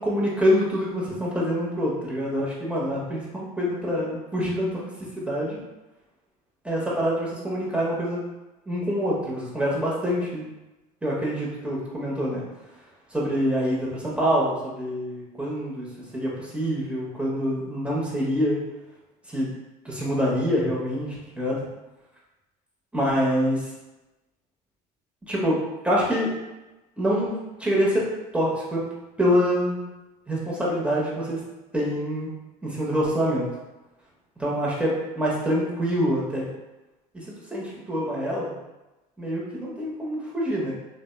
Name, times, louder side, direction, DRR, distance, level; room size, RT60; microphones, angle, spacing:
voice 1, 0.0-4.8 5.2-5.6 6.6-8.2 8.7-10.5 11.0-12.4 13.1-15.9 16.1-18.6 19.3-19.5 19.8-21.6 22.9-23.6 25.3-25.6 25.8-26.3 27.0-28.0 28.3-28.8 29.2-29.8 30.3-31.4 31.7-32.3 32.6-33.5 34.4-36.5 37.1-37.2 37.5-38.5 39.2-40.7, equal, 5° right, -5 dB, 0.9 m, -25 dB
2.6 x 2.2 x 2.2 m, 1.0 s
hypercardioid pair, 65°, 21 cm